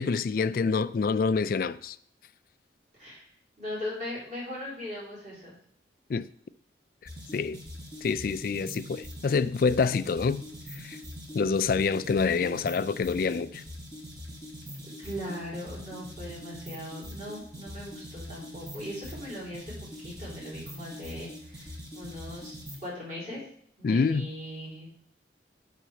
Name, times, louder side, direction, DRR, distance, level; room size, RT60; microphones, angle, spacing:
voice 1, 0.0-2.0 6.1-6.3 7.3-7.6 8.0-10.4 10.7-11.0 11.3-13.6 23.8-24.3, left 5 dB, 50° left, 0.3 m, -26 dB
voice 2, 3.6-5.5 15.0-19.7 20.0-23.4 23.8-24.9, left 1 dB, 40° right, 3.9 m, -39 dB
sound 1, 7.1-22.9, left 1 dB, 65° right, 3.6 m, -43 dB
9.1 x 4.4 x 6.3 m
head